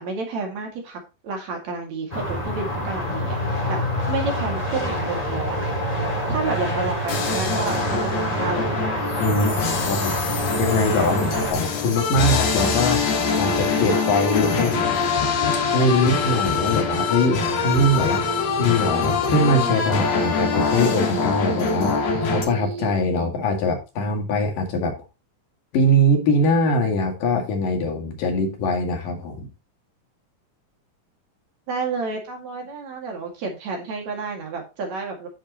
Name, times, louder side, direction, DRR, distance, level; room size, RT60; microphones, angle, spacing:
voice 1, 0.0-3.8 4.1-5.6 6.3-8.8 31.7-35.3, right 4 dB, 60° right, 2 dB, 3.3 m, -30 dB
sound 1, 2.1-11.5, equal, 15° left, 2.0 m, -26 dB
sound 2, 7.1-22.4, left 5 dB, 55° left, 2.7 m, -24 dB
voice 2, 9.2-9.5 9.9-10.2 10.6-13.1 13.4-14.8 15.7-18.2 18.6-24.9 25.7-29.5, left 1 dB, 80° left, 3 dB, 3.8 m, -22 dB
sound 3, 13.1-22.9, right 4 dB, 75° right, 1.6 m, -33 dB
10.5 x 7.6 x 2.9 m, 0.28 s
omnidirectional pair, 3.8 m